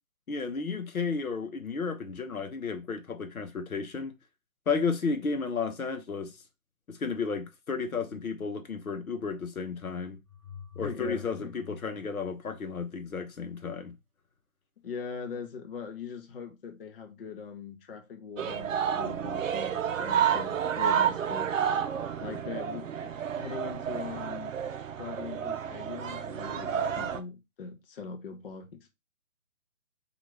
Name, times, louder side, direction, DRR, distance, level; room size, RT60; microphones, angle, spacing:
voice 1, 0.3-4.1 4.7-6.4 6.9-10.2 10.8-14.0, left 5 dB, 90° left, 0.7 m, -33 dB
sound 1, 10.2-13.1, left 7 dB, 15° right, 0.8 m, -46 dB
voice 2, 10.8-11.5 14.8-21.6 22.2-22.9 23.4-24.6 25.0-29.0, left 6 dB, 45° left, 0.5 m, -41 dB
sound 2, 18.4-27.2, right 8 dB, 65° right, 0.5 m, -30 dB
2.8 x 2.4 x 3.1 m
figure-of-eight pair, 135°, 41 cm